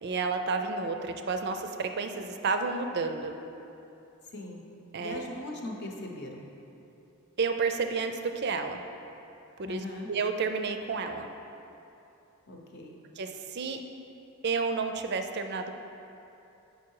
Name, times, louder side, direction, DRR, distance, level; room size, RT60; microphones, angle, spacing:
voice 1, 0.0-3.3 4.9-5.2 7.4-8.8 9.6-11.3 13.2-13.8 14.4-15.7, right 4 dB, 50° right, 7 dB, 0.4 m, -31 dB
voice 2, 4.3-4.6 5.0-6.5 9.6-10.1 12.5-13.0, left 1 dB, 50° left, 1 dB, 0.8 m, -39 dB
7.3 x 5.5 x 4.7 m, 2.8 s
head